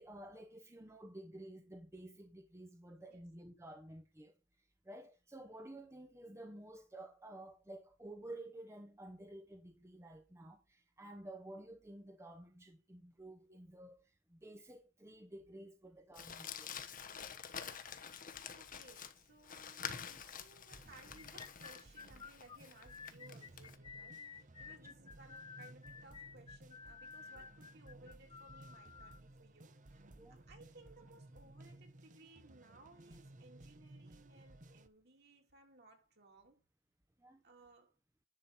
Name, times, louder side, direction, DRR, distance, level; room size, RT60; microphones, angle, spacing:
voice 1, 0.0-16.7 30.2-30.4 37.2-37.4, right 1 dB, 15° right, 0.9 m, -52 dB
Crumpling crinkling, 16.1-23.8, left 7 dB, 40° left, 1.1 m, -48 dB
voice 2, 18.5-30.0 30.3-36.6 37.4-37.9, right 2 dB, 55° right, 3.1 m, -62 dB
sound 1, 20.7-34.9, right 1 dB, 40° right, 0.9 m, -58 dB
sound 2, 21.2-29.2, left 5 dB, 25° left, 0.4 m, -53 dB
10.5 x 6.0 x 4.2 m
head